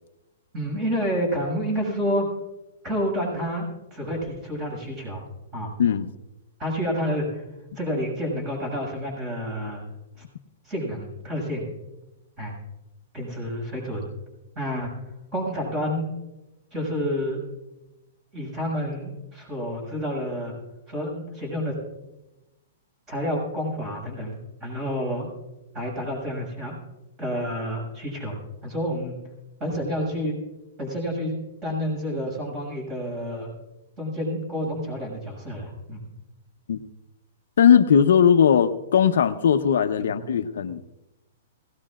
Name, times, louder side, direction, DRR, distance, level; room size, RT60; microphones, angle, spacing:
voice 1, 0.5-2.3 2.8-5.2 5.5-5.7 6.6-7.4 7.7-9.8 10.6-11.6 12.4-12.5 13.1-14.0 14.5-14.9 15.3-16.1 16.7-17.4 18.3-20.5 20.9-21.8 23.1-24.3 24.6-25.3 25.7-26.7 27.2-28.4 28.6-29.1 29.6-30.3 30.8-31.4 31.6-33.5 34.0-36.0 40.0-40.4, equal, 20° right, 0 dB, 6.8 m, -29 dB
voice 2, 5.8-6.1 36.7-36.8 37.6-40.8, left 8 dB, 75° left, 8 dB, 0.8 m, -18 dB
21.0 x 17.5 x 2.5 m, 0.99 s
hypercardioid pair, 165°, 0 cm